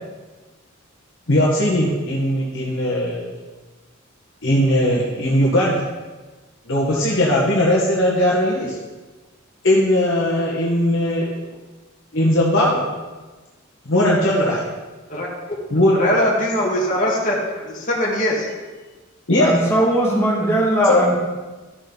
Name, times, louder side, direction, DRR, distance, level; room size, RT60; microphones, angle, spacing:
voice 1, 1.3-3.4 4.4-5.8 6.7-8.8 9.6-11.3 12.1-12.8 13.8-14.6 15.7-15.9 19.3-19.6 20.9-21.1, left 1 dB, 65° left, -5 dB, 1.5 m, -18 dB
voice 2, 15.1-15.6 15.9-18.5, equal, 40° left, -4 dB, 2.0 m, -21 dB
voice 3, 19.4-21.2, right 1 dB, 15° left, -4 dB, 2.1 m, -18 dB
12.5 x 6.5 x 4.0 m, 1.2 s
head